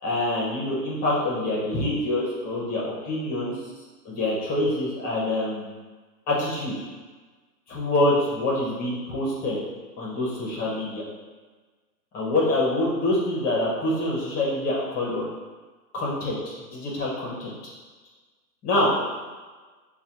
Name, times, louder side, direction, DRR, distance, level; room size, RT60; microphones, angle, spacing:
voice 1, 0.0-3.5 4.0-5.6 6.3-6.7 7.7-9.6 10.0-11.0 12.1-15.2 15.9-16.4 16.7-17.5 18.6-18.9, left 1 dB, 20° left, -5 dB, 0.7 m, -25 dB
5.6 x 2.2 x 2.8 m, 1.3 s
hypercardioid pair, 130°, 49 cm